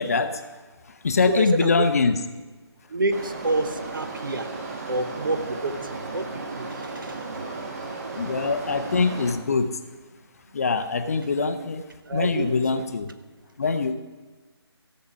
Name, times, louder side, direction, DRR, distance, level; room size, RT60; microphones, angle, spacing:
voice 1, 0.0-2.2 8.2-9.8 10.5-13.1 13.6-13.9, left 4 dB, 35° left, 9 dB, 0.7 m, -24 dB
voice 2, 1.3-1.7 2.9-4.5 4.9-7.2 7.9-8.0 12.1-12.8, right 2 dB, 50° right, 9 dB, 1.0 m, -28 dB
sound 1, 3.1-9.3, right 3 dB, 35° right, 1.8 m, -35 dB
15.5 x 6.6 x 6.2 m, 1.3 s
figure-of-eight pair, 155°, 14 cm